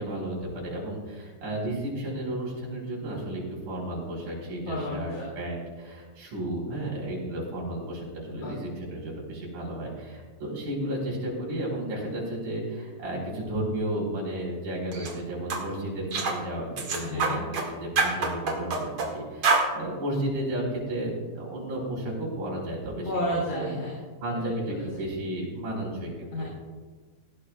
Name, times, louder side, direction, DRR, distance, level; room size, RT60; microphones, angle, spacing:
voice 1, 0.0-23.1 23.5-23.7 24.2-26.4, right 1 dB, 75° right, -3 dB, 5.9 m, -33 dB
voice 2, 4.7-5.3 8.3-8.5 17.0-17.4 23.1-24.0 24.6-25.0 26.3-26.4, left 1 dB, 70° left, -4 dB, 4.6 m, -32 dB
sound 1, 14.9-15.1 15.5-15.6 16.1-16.4 16.8-17.7 18.0-19.1 19.4-19.7, right 4 dB, 50° right, 2.6 m, -25 dB
18.0 x 15.0 x 2.3 m, 1.4 s
omnidirectional pair, 3.7 m